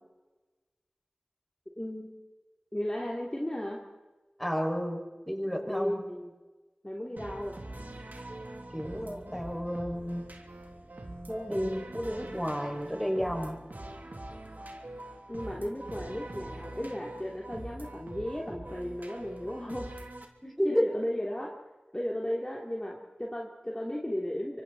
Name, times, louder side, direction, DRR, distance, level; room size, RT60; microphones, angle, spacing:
voice 1, 1.7-2.2 2.7-3.8 5.7-6.4 6.8-7.6 15.3-19.9 20.6-21.5 21.9-24.6, left 1 dB, 25° left, -2 dB, 3.3 m, -35 dB
voice 2, 4.4-6.1 8.7-10.2 11.3-13.6 20.4-20.7, equal, ahead, 1 dB, 6.3 m, -32 dB
sound 1, 7.2-20.2, right 1 dB, 65° right, 3.1 m, -44 dB
26.0 x 25.5 x 4.3 m, 1.2 s
wide cardioid pair, 40°, 3 cm